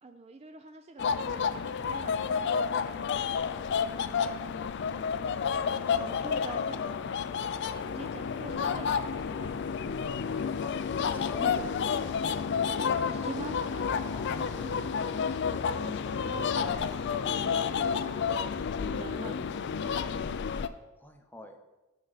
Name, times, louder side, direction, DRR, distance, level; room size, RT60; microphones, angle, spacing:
voice 1, 0.0-2.5 2.8-3.9 5.2-5.6 6.0-7.2 7.6-10.5 13.1-16.9 17.3-20.3, right 3 dB, 30° right, 6 dB, 0.4 m, -46 dB
sound 1, 1.0-20.7, left 6 dB, 55° left, 0.4 m, -30 dB
voice 2, 4.9-6.0 8.5-8.9 10.6-10.8 11.1-12.2 12.7-13.3 14.0-15.0 17.0-17.3 21.0-21.6, left 1 dB, 10° left, 5 dB, 0.7 m, -47 dB
9.6 x 6.5 x 4.0 m, 1.1 s
head